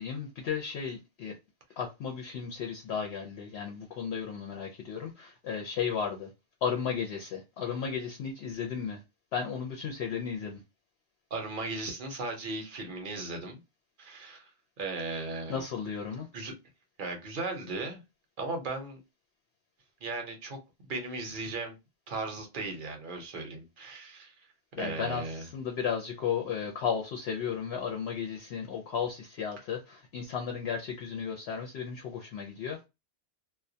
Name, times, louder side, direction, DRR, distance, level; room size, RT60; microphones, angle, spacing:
voice 1, 0.0-1.4 1.8-6.3 6.6-9.0 9.3-10.6 15.5-16.3 24.8-32.8, left 7 dB, 70° left, 0.8 m, -34 dB
voice 2, 11.3-13.6 14.0-14.5 14.8-15.6 16.3-16.5 17.0-18.0 18.4-19.0 20.0-21.7 22.1-24.3 24.8-25.4, right 3 dB, 55° right, 0.7 m, -37 dB
2.2 x 2.1 x 2.6 m
omnidirectional pair, 1.2 m